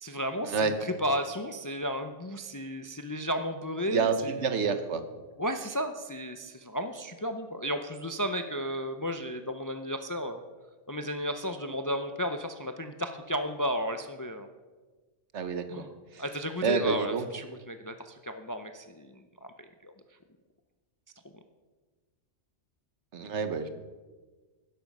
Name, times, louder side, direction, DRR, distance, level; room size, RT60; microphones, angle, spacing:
voice 1, 0.0-4.7 5.4-10.4 10.9-14.5 15.7-15.9 16.2-19.9, equal, 25° left, 8 dB, 0.4 m, -33 dB
voice 2, 3.9-5.0 15.3-15.8 16.1-16.2 16.6-17.2 23.1-23.7, right 5 dB, 75° right, 9 dB, 1.3 m, -28 dB
12.0 x 10.5 x 5.3 m, 1.3 s
omnidirectional pair, 1.2 m